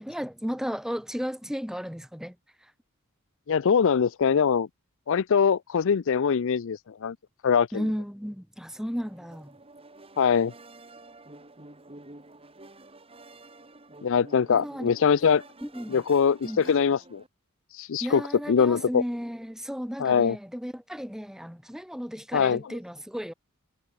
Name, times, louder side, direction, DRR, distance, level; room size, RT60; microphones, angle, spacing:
voice 1, 0.0-2.4 7.7-9.5 14.5-14.9 15.6-16.0 16.4-16.6 18.0-23.3, equal, ahead, 3.8 m, -34 dB
voice 2, 3.5-4.7 5.1-7.2 7.4-7.8 10.2-10.5 14.0-15.4 15.9-17.2 17.7-18.2 18.5-19.0 20.0-20.4 22.3-22.8, left 6 dB, 65° left, 0.5 m, -23 dB
sound 1, 9.0-17.3, right 2 dB, 25° right, 4.2 m, -49 dB
head